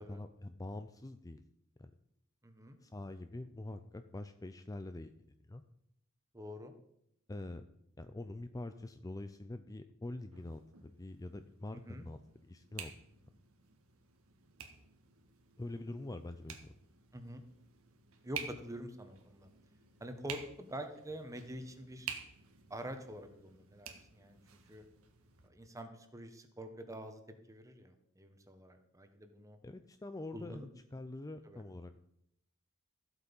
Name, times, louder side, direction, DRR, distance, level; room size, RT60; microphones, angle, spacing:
voice 1, 0.0-1.4 1.8-1.9 2.8-5.1 5.5-5.6 7.3-7.6 8.0-12.9 15.6-16.7 29.6-31.9, left 2 dB, 15° left, 9 dB, 0.5 m, -45 dB
voice 2, 2.4-2.8 6.3-6.7 11.7-12.1 17.1-17.4 18.2-19.5 20.0-22.1 22.7-24.4 24.7-24.8 25.4-27.2 27.5-29.6 30.3-30.7 31.4-31.6, equal, 15° right, 7 dB, 1.3 m, -46 dB
sound 1, 10.3-25.5, right 7 dB, 80° right, 1.6 m, -51 dB
14.0 x 8.0 x 5.5 m, 0.76 s
head